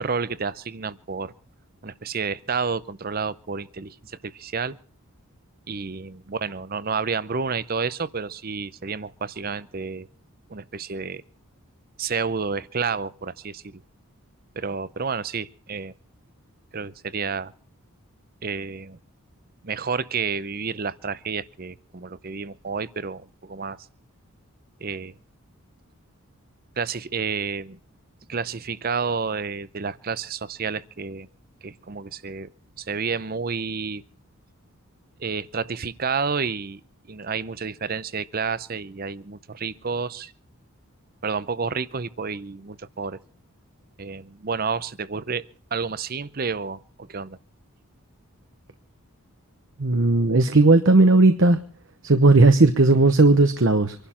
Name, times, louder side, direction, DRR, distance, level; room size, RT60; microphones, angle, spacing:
voice 1, 0.0-1.3 1.8-4.8 5.7-10.1 10.5-11.2 12.0-13.8 14.6-15.9 16.7-17.5 18.4-19.0 19.6-23.8 24.8-25.1 26.8-27.8 28.3-31.3 31.6-32.5 32.8-34.0 35.2-36.8 37.1-40.3 41.2-43.2 44.0-45.4 45.7-47.4, right 5 dB, 45° right, 17 dB, 0.7 m, -30 dB
voice 2, 49.8-51.6 52.0-53.9, right 2 dB, 60° right, 8 dB, 0.9 m, -16 dB
26.0 x 11.5 x 4.3 m, 0.41 s
head